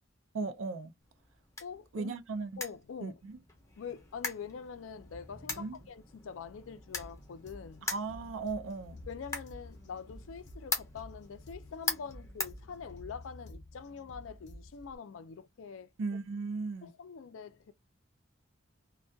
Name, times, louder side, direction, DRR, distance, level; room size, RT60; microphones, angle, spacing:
voice 1, 0.3-0.9 1.9-2.5 3.0-3.4 5.5-5.8 7.8-9.0 16.0-16.9, right 4 dB, 80° right, 0.4 m, -36 dB
sound 1, 1.0-13.3, left 3 dB, 15° left, 0.5 m, -42 dB
voice 2, 1.6-2.1 2.6-3.2 3.8-7.9 9.1-15.9 16.8-17.7, left 6 dB, 85° left, 0.4 m, -45 dB
sound 2, 7.0-15.0, left 1 dB, 55° left, 0.7 m, -51 dB
2.2 x 2.2 x 2.5 m
head